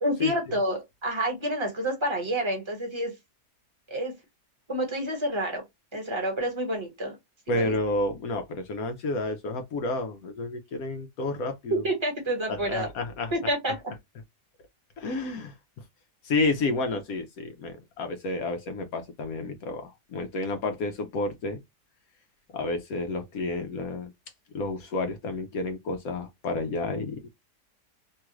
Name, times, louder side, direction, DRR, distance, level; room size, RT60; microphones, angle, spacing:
voice 1, 0.0-3.1 3.9-4.1 4.7-5.6 5.9-7.2 7.5-7.7 11.7-12.9 13.3-13.8, right 1 dB, 20° right, 1.1 m, -28 dB
voice 2, 7.5-11.8 12.5-13.3 15.0-15.5 16.2-21.6 22.5-24.1 24.5-27.3, left 2 dB, 70° left, 1.0 m, -30 dB
3.1 x 2.4 x 2.9 m
omnidirectional pair, 1.7 m